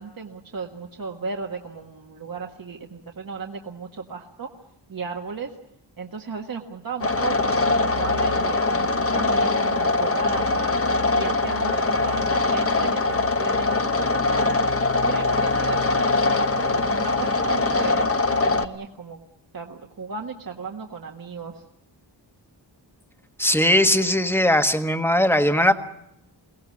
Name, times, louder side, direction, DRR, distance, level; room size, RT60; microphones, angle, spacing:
voice 1, 0.0-4.5 4.9-5.6 6.0-10.8 11.1-14.6 15.1-19.2 19.5-21.6, right 4 dB, 50° right, 2 dB, 1.6 m, -35 dB
sound 1, 7.0-18.7, left 3 dB, 30° left, 1.1 m, -22 dB
voice 2, 23.4-25.7, left 1 dB, 5° left, 7 dB, 1.3 m, -19 dB
23.0 x 17.5 x 9.7 m, 0.85 s
wide cardioid pair, 120°, 44 cm